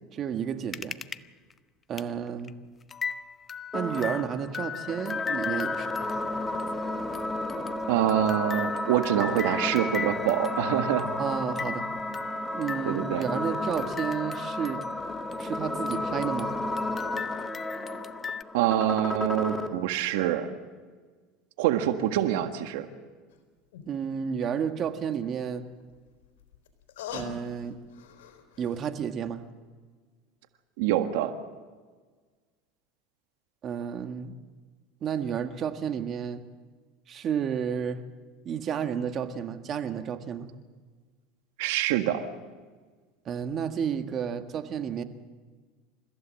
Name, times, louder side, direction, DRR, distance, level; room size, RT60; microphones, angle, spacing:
voice 1, 0.1-1.0 1.9-2.5 3.7-6.1 11.2-11.9 12.5-14.8 15.4-16.5 23.9-25.6 27.1-27.8 28.6-29.4 33.6-34.3 35.0-36.4 37.1-38.0 38.4-40.5 43.3-45.0, right 8 dB, 40° right, 7 dB, 1.8 m, -31 dB
sound 1, 0.7-1.2 1.5-1.6 2.0-2.1 2.4-2.5 2.9-15.6 15.9-18.4, left 6 dB, 25° left, 0.7 m, -38 dB
sound 2, 3.7-19.7, left 1 dB, 10° left, 2.3 m, -33 dB
voice 2, 7.9-11.0 12.9-13.2 18.5-20.5 21.6-22.9 30.8-31.3 41.6-42.2, right 12 dB, 75° right, 7 dB, 1.6 m, -25 dB
sound 3, 23.3-23.4 23.7-23.8 25.7-28.9 29.2-29.3, left 6 dB, 85° left, 3.9 m, -43 dB
29.0 x 15.5 x 7.6 m, 1.4 s
supercardioid pair, 110°, 0 cm